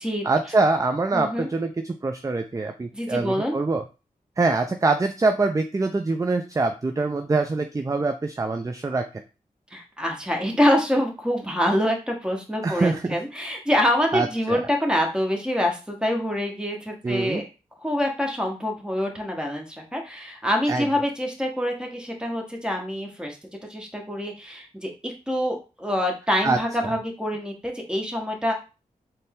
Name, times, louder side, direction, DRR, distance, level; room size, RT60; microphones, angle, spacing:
voice 1, 0.2-3.8 4.4-9.2 12.6-13.2 14.1-14.6 17.0-17.4 20.7-20.9 26.4-26.6, right 3 dB, 20° right, 6 dB, 0.4 m, -24 dB
voice 2, 1.1-1.5 2.9-3.5 9.7-17.4 17.8-23.4 23.7-28.5, equal, 5° right, 1 dB, 1.2 m, -25 dB
4.0 x 2.1 x 3.6 m, 0.31 s
cardioid pair, 40°, 15 cm